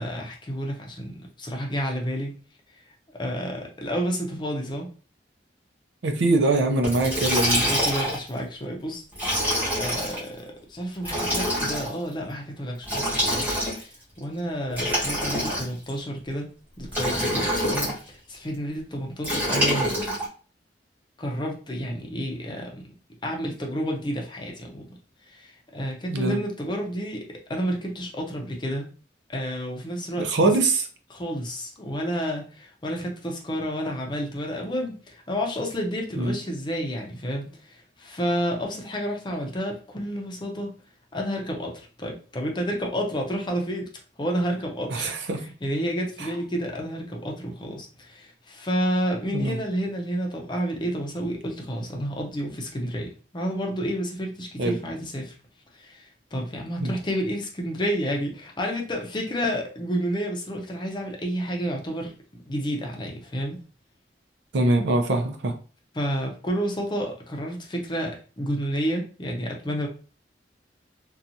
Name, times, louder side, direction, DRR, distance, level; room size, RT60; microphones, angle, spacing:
voice 1, 0.0-2.3 3.2-4.9 7.6-9.0 9.8-13.5 14.2-16.5 16.8-19.9 21.2-22.8 23.2-24.9 25.3-28.9 29.3-30.3 31.1-40.7 41.1-41.7 42.0-43.9 44.2-45.2 45.6-55.3 55.7-62.1 62.5-63.6 66.0-69.9, equal, 25° left, 1 dB, 0.6 m, -30 dB
voice 2, 6.0-7.6 26.1-26.4 30.2-30.9 36.2-36.4 44.9-45.4 46.2-46.3 49.3-49.6 54.6-54.8 56.8-56.9 64.5-65.5, right 2 dB, 75° right, 5 dB, 0.5 m, -23 dB
Liquid, 6.8-8.3 9.1-10.2 11.0-11.9 12.8-13.9 14.7-15.9 16.9-18.0 19.2-20.2, equal, 10° right, 1.2 m, -25 dB
2.8 x 2.3 x 2.6 m, 0.38 s
head